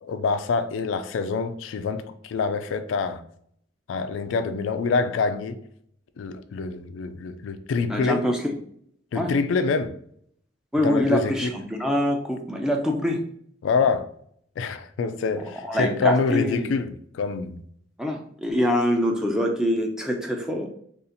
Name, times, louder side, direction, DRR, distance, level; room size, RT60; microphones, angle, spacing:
voice 1, 0.0-3.2 3.9-5.6 6.2-8.3 9.1-10.0 10.8-11.5 13.6-14.1 14.6-17.6, left 4 dB, 75° left, 0.3 m, -26 dB
voice 2, 7.9-8.6 9.1-9.3 10.7-13.2 15.6-16.7 18.0-20.7, equal, 5° right, 0.4 m, -24 dB
2.7 x 2.4 x 3.8 m
head